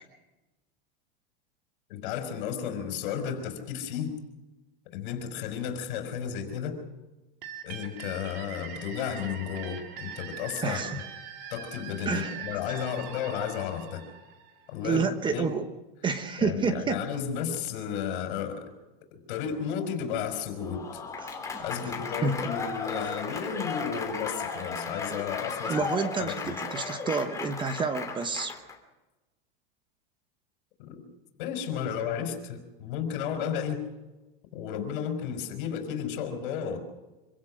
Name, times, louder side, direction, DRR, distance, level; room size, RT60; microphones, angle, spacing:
voice 1, 1.9-4.1 4.9-6.8 7.6-11.0 11.5-14.0 14.7-15.5 16.4-18.7 19.1-21.0 21.6-25.9 26.2-26.6 30.8-31.0 31.4-33.9 34.5-36.8, left 8 dB, 60° left, 6 dB, 5.3 m, -33 dB
sound 1, 7.4-15.0, right 7 dB, 35° right, 2.6 m, -42 dB
voice 2, 10.6-11.0 12.1-12.4 14.8-15.6 16.0-17.0 21.2-21.6 22.2-22.4 25.6-28.5, right 5 dB, 15° right, 9 dB, 1.2 m, -29 dB
Applause / Crowd, 20.6-28.8, left 4 dB, 10° left, 2.9 m, -35 dB
26.0 x 16.5 x 6.4 m, 1.1 s
supercardioid pair, 150°, 29 cm